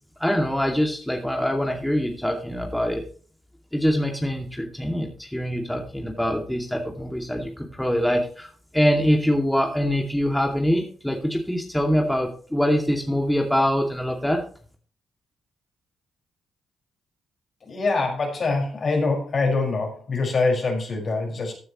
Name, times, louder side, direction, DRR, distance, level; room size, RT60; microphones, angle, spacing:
voice 1, 0.2-3.0 3.7-8.5 8.7-14.4, equal, 5° left, 2 dB, 2.4 m, -24 dB
voice 2, 17.6-21.5, left 3 dB, 50° left, 2 dB, 5.4 m, -24 dB
15.0 x 9.8 x 3.1 m, 0.42 s
hypercardioid pair, 45°, 0 cm